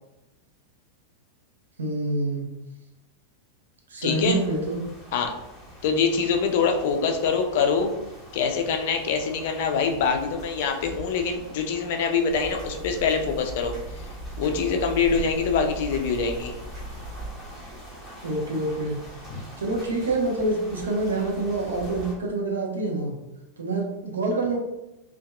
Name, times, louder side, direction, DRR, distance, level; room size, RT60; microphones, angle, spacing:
voice 1, 1.8-2.4 3.9-4.8 18.2-19.0 19.6-23.1 23.6-24.6, right 2 dB, 70° right, 0 dB, 0.5 m, -26 dB
voice 2, 4.0-4.4 5.1-5.3 5.8-7.9 8.3-13.8 14.4-16.5 19.3-19.4, left 5 dB, 50° left, 4 dB, 0.3 m, -24 dB
sound 1, 4.1-22.2, equal, 10° left, 1.0 m, -45 dB
sound 2, 12.3-17.3, right 1 dB, 35° right, 0.8 m, -37 dB
2.6 x 2.2 x 2.3 m, 0.95 s
figure-of-eight pair, 90°, 0 cm